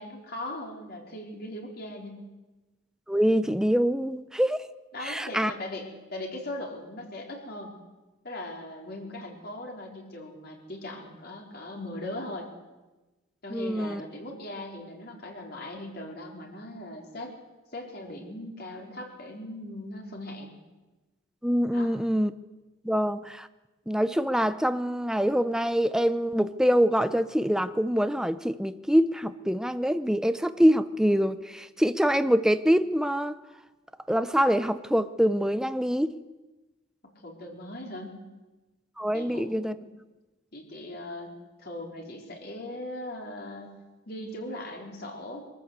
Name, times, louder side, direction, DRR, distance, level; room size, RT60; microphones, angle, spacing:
voice 1, 0.0-2.3 4.9-7.8 8.2-12.5 13.4-17.4 17.7-20.5 21.7-21.9 37.0-38.3 39.1-39.4 40.5-41.3 41.6-43.8 44.1-45.5, left 1 dB, 50° left, 1 dB, 4.3 m, -39 dB
voice 2, 3.1-4.6 5.0-5.5 13.5-14.0 21.4-22.3 22.8-23.5 23.9-33.4 34.1-36.2 39.0-39.7, equal, 5° right, 11 dB, 0.6 m, -25 dB
24.0 x 13.5 x 8.2 m, 1.1 s
head